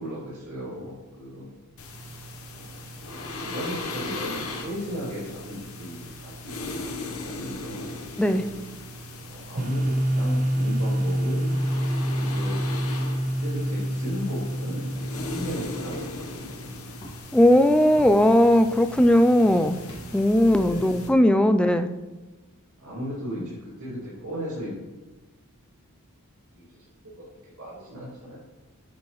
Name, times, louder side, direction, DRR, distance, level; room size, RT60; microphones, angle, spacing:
voice 1, 0.0-1.5 2.6-7.9 9.3-11.6 11.9-12.6 13.2-16.9 20.5-21.5 22.8-24.7 26.5-26.7 27.2-27.3 27.6-28.4, equal, 80° right, -9 dB, 2.3 m, -36 dB
sound 1, 1.8-21.1, left 2 dB, 70° left, 1.0 m, -38 dB
sound 2, 9.6-16.4, equal, 35° right, 0.8 m, -27 dB
sound 3, 15.0-15.3 15.9-16.3 17.0-17.2 18.0-18.3 19.0-19.3 19.9-20.3, equal, 25° left, 1.6 m, -43 dB
voice 2, 17.3-19.8 20.1-21.9, left 1 dB, 5° left, 8 dB, 0.3 m, -18 dB
8.7 x 5.6 x 3.0 m, 1.2 s
head